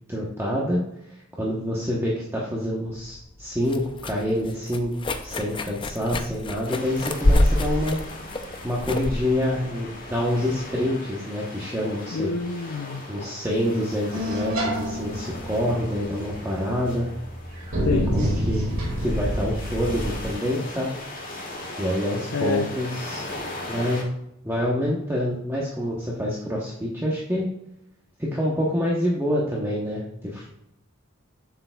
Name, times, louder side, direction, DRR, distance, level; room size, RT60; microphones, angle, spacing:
voice 1, 0.1-0.8 1.1-4.9 5.2-8.0 8.6-12.3 13.1-17.1 17.8-18.7 19.0-21.0 21.8-23.2 23.7-24.1 24.4-27.5 28.2-30.5, left 1 dB, 10° right, -4 dB, 0.9 m, -27 dB
sound 1, 2.9-10.7, left 1 dB, 25° left, 0.5 m, -27 dB
sound 2, 6.6-24.0, left 2 dB, 40° left, 1.7 m, -39 dB
voice 2, 12.1-13.1 17.8-18.4 22.3-22.7, left 4 dB, 90° left, 5 dB, 0.5 m, -28 dB
sound 3, 14.1-20.3, equal, 70° right, 2.2 m, -28 dB
7.7 x 6.8 x 2.3 m, 0.84 s
head